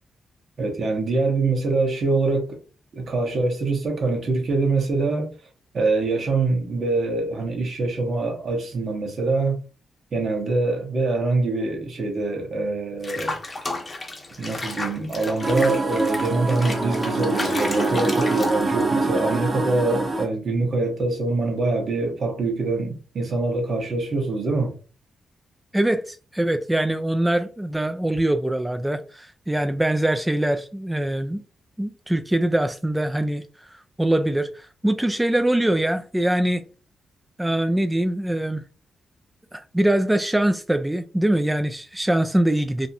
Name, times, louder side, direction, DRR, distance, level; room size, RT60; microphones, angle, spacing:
voice 1, 0.6-2.6 2.9-5.3 5.7-9.6 10.1-13.3 14.4-24.8, right 3 dB, 65° right, 0.9 m, -24 dB
Water / Bathtub (filling or washing), 13.0-18.9, left 2 dB, 35° left, 0.8 m, -33 dB
sound 1, 15.4-20.3, right 2 dB, 35° right, 0.8 m, -25 dB
voice 2, 25.7-31.4 31.8-33.4 33.7-36.6 37.4-38.6 39.5-42.9, right 1 dB, 10° right, 0.3 m, -23 dB
2.6 x 2.1 x 2.7 m
supercardioid pair, 50°, 0 cm